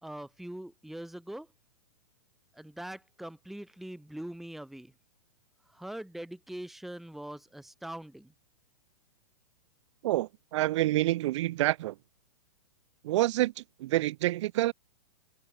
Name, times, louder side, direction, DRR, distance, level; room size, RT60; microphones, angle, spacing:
voice 1, 0.0-1.5 2.5-4.9 5.7-8.3, right 1 dB, ahead, 1.7 m, -42 dB
voice 2, 10.0-11.9 13.0-14.7, right 16 dB, 55° right, 2.0 m, -28 dB
hypercardioid pair, 140°, 19 cm